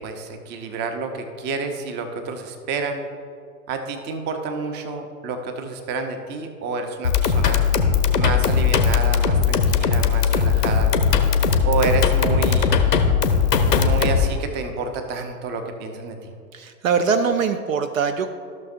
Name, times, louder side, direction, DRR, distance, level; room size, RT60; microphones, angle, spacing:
voice 1, 0.0-3.0 3.7-7.6 8.1-10.9 11.6-12.7 13.7-16.3, right 4 dB, 20° right, 6 dB, 0.7 m, -29 dB
sound 1, 7.0-14.3, left 6 dB, 80° left, 0.9 m, -19 dB
voice 2, 16.5-18.3, right 6 dB, 60° right, 9 dB, 0.6 m, -22 dB
14.0 x 6.4 x 2.6 m, 2.3 s
figure-of-eight pair, 105°, 47 cm